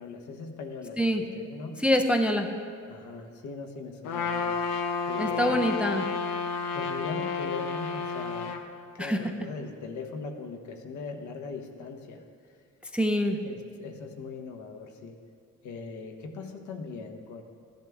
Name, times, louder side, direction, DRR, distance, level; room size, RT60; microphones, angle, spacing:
voice 1, 0.0-1.8 2.9-4.6 5.1-5.6 6.7-8.6 8.9-12.2 13.3-15.2 15.6-17.4, left 4 dB, 65° left, 4 dB, 1.3 m, -40 dB
voice 2, 1.8-2.5 5.2-6.1 9.0-9.2 12.9-13.4, equal, 5° right, 4 dB, 0.5 m, -25 dB
Trumpet, 4.0-8.6, left 5 dB, 85° left, 1.0 m, -31 dB
14.0 x 11.5 x 3.6 m, 2.2 s
cardioid pair, 130°, 31 cm